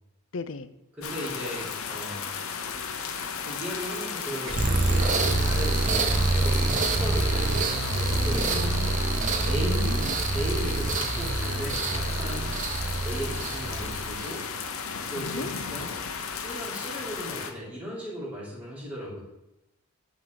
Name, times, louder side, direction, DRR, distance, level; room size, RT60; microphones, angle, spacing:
voice 1, 0.3-0.7 8.5-9.0 9.6-10.1 15.2-15.5, left 3 dB, 65° left, 13 dB, 0.5 m, -36 dB
voice 2, 0.9-2.4 3.4-9.0 9.4-10.1 10.3-12.5 13.0-14.4 15.0-15.9 16.4-19.2, equal, 5° right, -7 dB, 2.5 m, -37 dB
sound 1, 1.0-17.5, left 6 dB, 80° left, 0.8 m, -35 dB
sound 2, 4.5-14.5, right 2 dB, 35° right, 0.6 m, -26 dB
9.4 x 3.8 x 6.1 m, 0.91 s
head